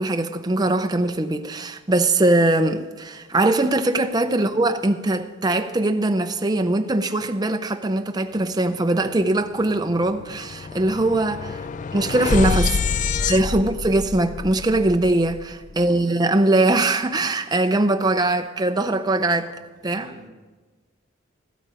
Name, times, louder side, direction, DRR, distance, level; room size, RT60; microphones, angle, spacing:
voice 1, 0.0-11.6 11.9-12.8 13.3-19.5 19.8-20.1, right 2 dB, 20° right, 0.6 m, -21 dB
sound 1, 9.1-9.3 9.6-15.8, left 5 dB, 35° left, 0.3 m, -27 dB
voice 2, 12.6-13.8 15.7-16.2 19.4-19.5 19.8-20.3, equal, 20° left, 3.9 m, -48 dB
14.5 x 13.5 x 4.9 m
head